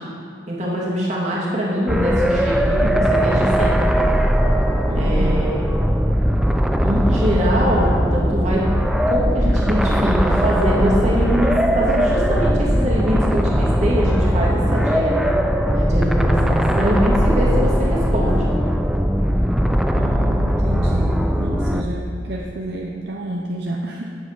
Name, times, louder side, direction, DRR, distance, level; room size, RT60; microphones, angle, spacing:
voice 1, 0.5-3.8 4.9-5.6 6.8-8.7 9.1-15.4 15.7-18.5, equal, 40° right, -5 dB, 2.4 m, -23 dB
sound 1, 1.9-21.8, equal, ahead, 0.4 m, -19 dB
voice 2, 4.9-5.6 20.0-24.1, right 1 dB, 60° right, -1 dB, 0.7 m, -30 dB
9.5 x 7.8 x 5.9 m, 2.3 s
head